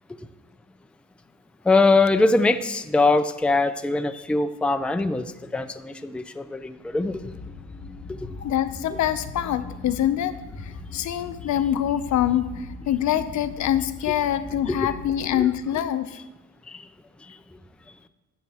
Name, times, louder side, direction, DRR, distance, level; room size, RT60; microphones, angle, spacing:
voice 1, 1.7-5.3 5.5-7.2 15.3-15.5, left 3 dB, 5° left, 9 dB, 0.4 m, -22 dB
sound 1, 6.9-16.0, left 3 dB, 40° left, 1.0 m, -40 dB
voice 2, 8.4-10.4 10.6-16.2, left 11 dB, 70° left, 11 dB, 0.7 m, -25 dB
12.0 x 7.4 x 3.5 m, 1.2 s
cardioid pair, 90°, 30 cm